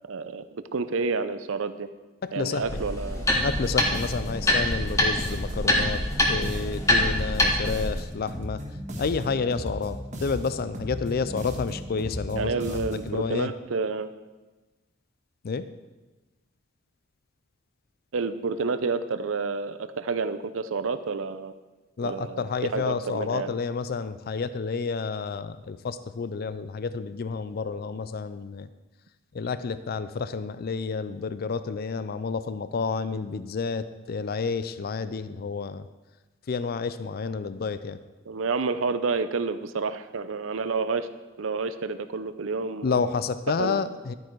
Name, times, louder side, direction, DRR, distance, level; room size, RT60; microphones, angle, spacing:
voice 1, 0.0-1.9 2.3-3.2 12.4-14.1 18.1-21.5 22.0-23.5 38.3-41.1 41.4-43.0 43.6-43.8, right 4 dB, 85° right, 12 dB, 0.6 m, -29 dB
voice 2, 2.2-2.8 3.4-6.0 6.3-8.6 9.0-13.5 15.4-15.7 22.0-28.7 29.3-35.8 36.5-38.0 42.8-44.1, left 5 dB, 50° left, 13 dB, 0.4 m, -30 dB
sound 1, 2.6-7.9, left 1 dB, 15° left, 1.6 m, -25 dB
sound 2, 3.3-13.2, equal, 35° right, 1.7 m, -36 dB
12.0 x 9.3 x 4.6 m, 1.2 s
head